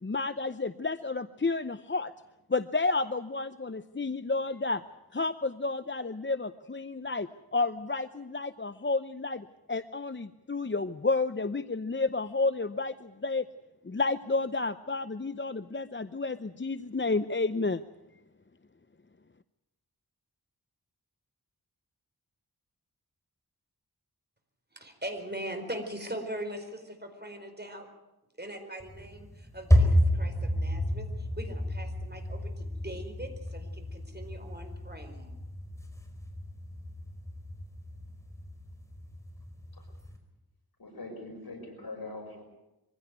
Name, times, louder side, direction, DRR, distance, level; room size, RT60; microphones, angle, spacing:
voice 1, 0.0-2.1 2.5-4.8 5.1-13.5 13.8-17.8, left 3 dB, 30° left, 12 dB, 0.7 m, -31 dB
voice 2, 24.7-27.9 28.4-35.3, right 1 dB, 25° right, 5 dB, 4.6 m, -41 dB
sound 1, 28.8-40.2, equal, 10° left, 4.9 m, -31 dB
voice 3, 40.8-42.4, left 2 dB, 75° left, 2 dB, 6.0 m, -42 dB
23.5 x 16.0 x 9.4 m, 0.96 s
wide cardioid pair, 50°, 37 cm